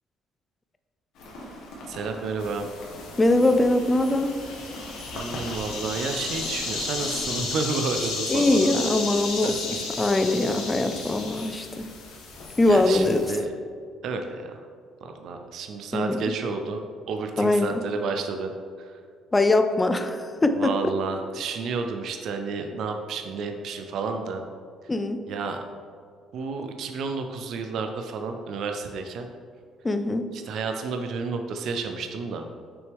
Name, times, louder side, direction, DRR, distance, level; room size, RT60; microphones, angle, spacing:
Rain, 1.1-7.4, left 1 dB, 65° left, 1.5 m, -42 dB
voice 1, 1.9-2.6 5.1-8.7 9.4-9.5 12.7-13.5 14.0-14.6 15.0-18.5 18.8-18.9 20.6-24.4 25.3-25.6 26.3-29.3 30.3-32.5, right 4 dB, 50° right, 5 dB, 0.5 m, -31 dB
sound 1, 2.4-13.4, left 4 dB, 85° left, 1.4 m, -34 dB
voice 2, 3.2-4.4 8.3-11.9 12.6-13.2 15.9-16.4 17.4-17.8 19.3-20.8 24.9-25.2 29.8-30.3, left 2 dB, 10° left, 8 dB, 0.4 m, -22 dB
6.5 x 6.1 x 3.5 m, 2.1 s
cardioid pair, 165°, 0 cm